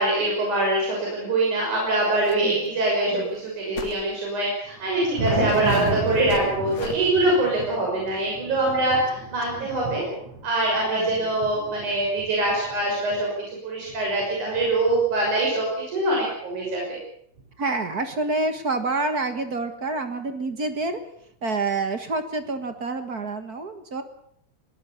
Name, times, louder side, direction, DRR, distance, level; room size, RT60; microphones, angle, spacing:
voice 1, 0.0-10.1 10.4-17.0, right 2 dB, 80° right, -2 dB, 7.5 m, -24 dB
sound 1, 2.2-2.4 2.7-2.8 3.8-4.0 4.8-4.9 5.5-7.0, left 6 dB, 70° left, 3.6 m, -36 dB
Thunder, 4.6-13.2 13.9-15.6 16.7-16.8 17.4-17.5 19.3-19.4 20.8-20.9 22.5-22.6, right 2 dB, 60° right, 6.7 m, -34 dB
voice 2, 5.3-6.0 9.5-9.7 11.0-11.1 17.6-21.0 21.4-24.0, right 3 dB, 40° right, 8 dB, 1.6 m, -28 dB
22.0 x 18.5 x 7.2 m, 0.68 s
omnidirectional pair, 3.4 m